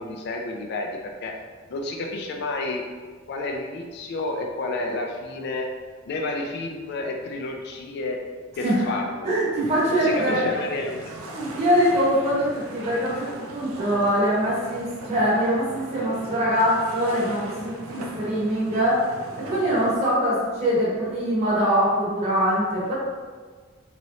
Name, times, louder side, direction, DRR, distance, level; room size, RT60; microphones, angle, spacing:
voice 1, 0.0-1.4 1.7-2.9 3.3-5.7 6.1-8.2 8.6-9.3 9.9-11.0, left 2 dB, 55° left, 2 dB, 0.3 m, -30 dB
voice 2, 9.2-10.4 11.3-19.0 19.4-23.0, equal, 30° right, -7 dB, 1.0 m, -23 dB
sound 1, 9.6-20.0, right 2 dB, 80° right, 0.4 m, -40 dB
3.0 x 2.9 x 2.6 m, 1.5 s
head